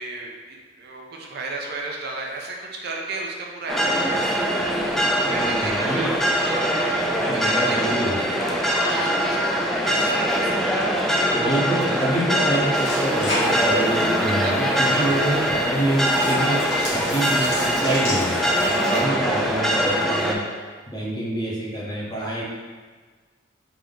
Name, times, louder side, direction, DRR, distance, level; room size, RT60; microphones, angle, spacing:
voice 1, 0.0-6.1 6.5-7.9 8.4-9.5 9.8-10.9 12.5-12.6 14.2-15.4 16.6-17.4 18.9-19.2, right 3 dB, 55° right, -1 dB, 0.5 m, -34 dB
sound 1, 3.7-20.4, equal, ahead, 0.3 m, -22 dB
voice 2, 5.3-6.1 7.3-8.2 11.3-18.4 18.7-22.4, right 1 dB, 20° left, -7 dB, 0.9 m, -27 dB
sound 2, 12.7-19.0, left 1 dB, 70° left, 1.4 m, -32 dB
3.6 x 2.8 x 3.7 m, 1.5 s
head